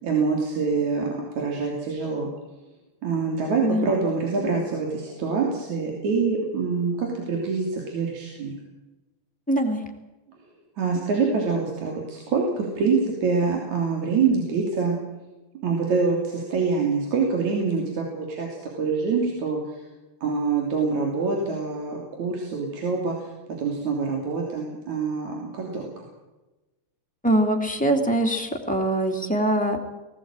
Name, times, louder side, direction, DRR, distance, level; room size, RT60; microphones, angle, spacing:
voice 1, 0.0-2.3 3.0-8.6 10.8-15.0 15.6-18.5 18.8-19.6 20.2-23.3 23.6-26.0, right 4 dB, 70° right, 0 dB, 4.4 m, -25 dB
voice 2, 3.6-3.9 9.5-9.8 27.2-29.8, right 1 dB, 5° left, 1 dB, 2.2 m, -23 dB
19.5 x 17.5 x 8.9 m, 1.0 s
omnidirectional pair, 3.4 m